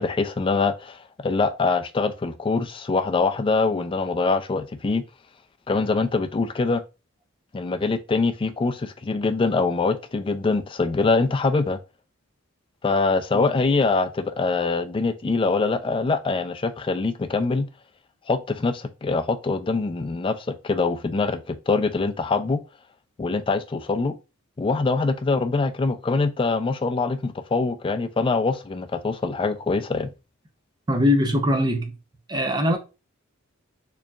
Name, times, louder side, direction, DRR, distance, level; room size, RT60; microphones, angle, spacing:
voice 1, 0.0-5.0 5.7-6.8 7.5-11.8 12.8-17.7 18.3-22.6 23.2-24.1 24.6-30.1, left 3 dB, 25° left, 0.3 m, -24 dB
voice 2, 30.9-31.9 32.3-32.8, left 1 dB, 20° right, 0.6 m, -21 dB
4.5 x 2.9 x 2.4 m
head